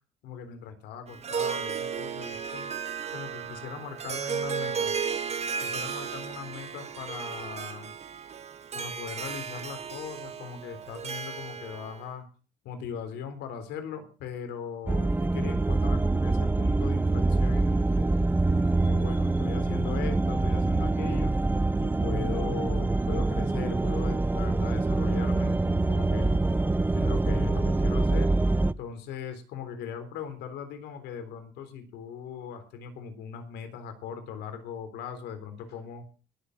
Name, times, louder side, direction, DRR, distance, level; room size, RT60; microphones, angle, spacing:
voice 1, 0.2-2.7 3.1-5.0 5.6-7.9 8.7-12.3 12.6-18.1 18.7-21.4 21.8-26.4 26.9-28.3 28.8-36.0, left 7 dB, 85° left, 8 dB, 3.7 m, -39 dB
Harp, 1.1-12.0, right 6 dB, 40° right, 2.0 m, -34 dB
sound 1, 14.9-28.7, right 2 dB, 10° right, 0.6 m, -25 dB
20.0 x 8.1 x 6.4 m, 0.37 s
cardioid pair, 110°, 17 cm